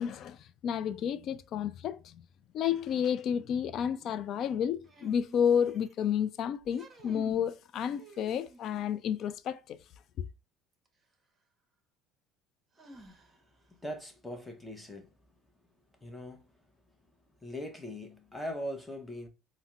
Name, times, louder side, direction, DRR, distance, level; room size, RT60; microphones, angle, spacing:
voice 1, 0.0-2.2 2.5-9.8, left 8 dB, 55° left, 0.3 m, -31 dB
sound 1, 4.8-6.1 6.6-7.5 8.0-8.9 10.8-10.9 12.8-13.6, right 1 dB, 20° right, 0.9 m, -51 dB
voice 2, 13.7-15.1 16.0-16.5 17.4-19.3, equal, 10° left, 0.8 m, -40 dB
4.1 x 2.0 x 2.3 m
supercardioid pair, 95°, 0 cm